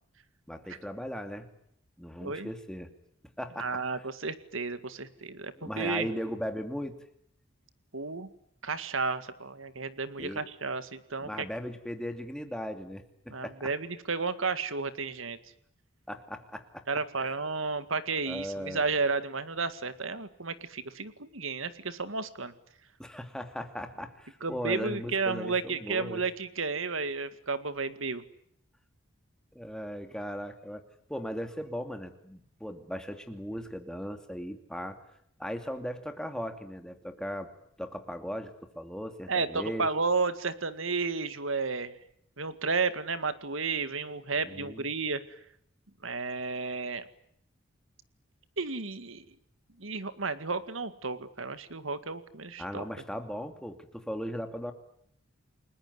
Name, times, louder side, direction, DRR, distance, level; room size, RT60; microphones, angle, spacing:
voice 1, 0.5-1.5 2.0-2.9 3.4-3.8 5.6-6.9 10.2-10.5 11.2-13.7 16.1-16.8 17.2-17.3 18.3-18.9 23.0-26.2 29.5-30.8 31.1-35.0 35.4-37.5 37.8-39.9 44.4-44.9 52.6-54.7, equal, 5° left, 6 dB, 2.5 m, -38 dB
voice 2, 2.2-2.5 3.6-6.1 7.9-8.3 8.6-11.5 13.3-15.4 16.9-22.5 24.4-28.2 39.3-41.9 42.4-45.2 46.0-47.0 48.6-49.3 49.8-52.9, right 4 dB, 75° right, 12 dB, 2.0 m, -32 dB
30.0 x 21.0 x 9.5 m, 0.73 s
head